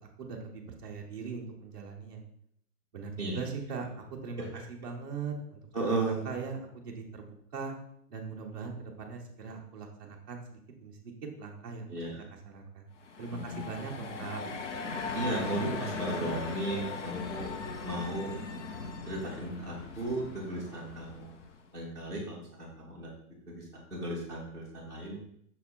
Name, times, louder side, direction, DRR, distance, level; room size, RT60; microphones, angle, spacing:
voice 1, 0.0-2.2 2.9-6.0 6.2-7.7 8.1-11.1 11.4-12.1 12.4-12.9 13.2-14.4, right 5 dB, 15° right, -6 dB, 0.8 m, -40 dB
voice 2, 5.7-6.3 11.9-12.2 13.5-13.6 15.1-17.5 17.8-18.3 19.1-21.3 21.7-23.1 23.5-25.2, right 2 dB, 5° left, -6 dB, 2.0 m, -35 dB
sound 1, 13.0-21.7, left 4 dB, 50° left, 0.7 m, -39 dB
6.1 x 4.8 x 4.4 m, 0.70 s
hypercardioid pair, 180°, 46 cm